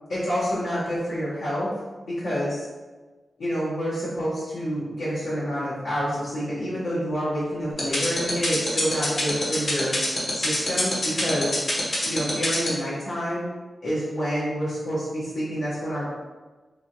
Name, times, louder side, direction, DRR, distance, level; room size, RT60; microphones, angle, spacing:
voice 1, 0.1-1.7 2.0-2.7 3.4-10.0 10.3-11.6 12.0-13.5 13.8-16.1, equal, 75° left, -10 dB, 1.0 m, -28 dB
sound 1, 7.8-12.7, left 1 dB, 45° left, 0.9 m, -24 dB
3.4 x 3.3 x 2.7 m, 1.3 s
wide cardioid pair, 140°, 0 cm